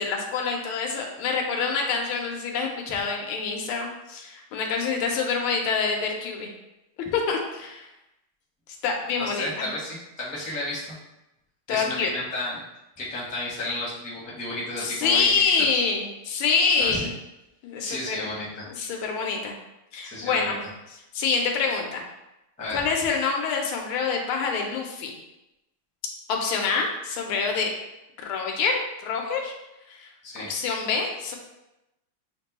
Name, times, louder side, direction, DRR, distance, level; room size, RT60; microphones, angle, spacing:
voice 1, 0.0-6.5 7.1-7.9 8.8-9.7 11.7-12.1 14.8-17.1 17.6-18.3 18.6-19.5 19.9-20.6 21.1-22.0 22.7-25.1 26.3-27.7 28.2-29.5 29.9-30.1 30.5-31.4, left 5 dB, 90° left, 1 dB, 1.6 m, -26 dB
voice 2, 9.2-11.0 11.7-12.6 13.0-15.3 15.6-15.7 16.8-17.1 17.8-18.7 20.0-20.6 22.6-22.9 30.2-30.5, left 1 dB, 5° left, -7 dB, 0.6 m, -32 dB
6.5 x 2.2 x 3.0 m, 0.94 s
omnidirectional pair, 2.3 m